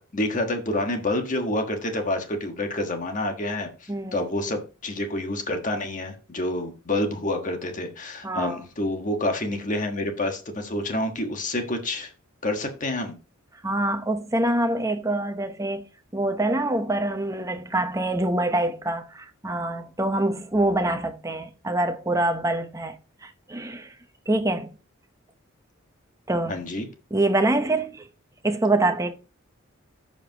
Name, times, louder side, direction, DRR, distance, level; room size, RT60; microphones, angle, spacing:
voice 1, 0.1-12.1 12.4-13.1 26.5-26.9, left 1 dB, 40° left, 1.4 m, -28 dB
voice 2, 3.9-4.3 8.2-8.6 13.6-15.9 16.1-24.0 24.3-24.7 26.3-26.6 27.1-28.1 28.4-29.1, right 2 dB, 15° right, 0.8 m, -25 dB
14.5 x 5.0 x 2.9 m
head